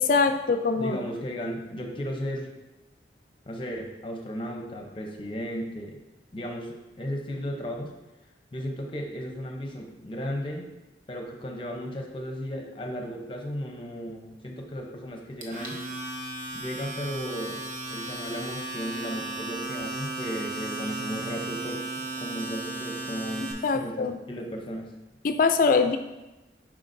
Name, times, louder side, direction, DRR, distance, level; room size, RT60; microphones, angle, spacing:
voice 1, 0.0-1.0 23.6-24.2 25.2-26.0, left 4 dB, 50° left, 8 dB, 0.4 m, -23 dB
voice 2, 0.8-2.5 3.5-6.0 6.3-7.9 8.5-10.7 11.1-15.8 16.5-17.6 17.9-21.8 22.2-24.9, equal, 30° left, 2 dB, 0.7 m, -35 dB
Domestic sounds home sounds, 15.4-23.5, right 2 dB, 45° right, 0.9 m, -35 dB
7.5 x 4.8 x 2.6 m, 1.1 s
head